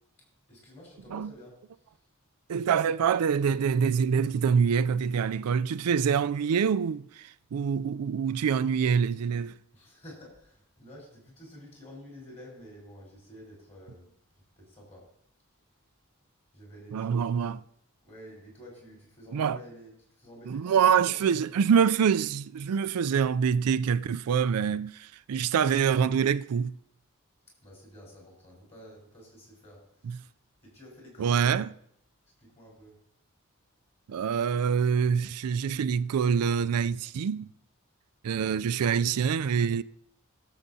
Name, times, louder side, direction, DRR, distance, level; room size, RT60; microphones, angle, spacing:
voice 1, 0.5-2.0 9.7-14.1 14.6-15.1 16.5-17.5 18.0-21.3 27.6-30.3 30.6-31.7 32.4-33.0, equal, 30° left, 4.2 m, -50 dB
voice 2, 2.5-9.5 16.9-17.6 19.3-19.6 20.5-26.8 30.0-30.2 31.2-31.7 34.1-37.5 38.2-39.8, right 7 dB, 90° right, 0.4 m, -25 dB
21.5 x 7.3 x 2.7 m
head